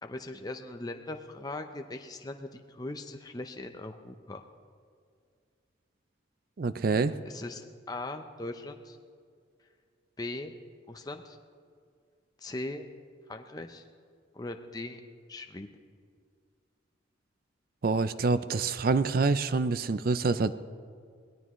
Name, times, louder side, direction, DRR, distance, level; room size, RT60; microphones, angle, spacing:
voice 1, 0.0-4.4 7.2-9.0 10.2-10.5 10.9-11.4 12.4-12.8 13.3-13.9 14.3-15.0 15.3-15.7, left 2 dB, 20° left, 5 dB, 0.6 m, -39 dB
voice 2, 6.6-7.2 17.8-20.6, right 4 dB, 50° right, 14 dB, 0.4 m, -26 dB
23.5 x 18.0 x 3.1 m, 2.1 s
head